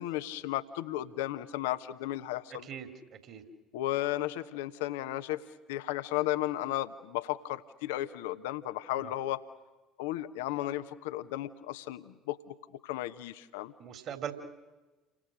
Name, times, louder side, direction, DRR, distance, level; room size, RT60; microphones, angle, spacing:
voice 1, 0.0-2.7 3.7-5.4 5.7-9.4 10.0-12.5 12.8-13.7, left 14 dB, 65° left, 11 dB, 1.1 m, -34 dB
voice 2, 2.6-3.4 9.0-9.1 13.8-14.3, right 9 dB, 50° right, 5 dB, 3.3 m, -41 dB
30.0 x 24.5 x 6.5 m, 1.2 s
figure-of-eight pair, 60°, 0 cm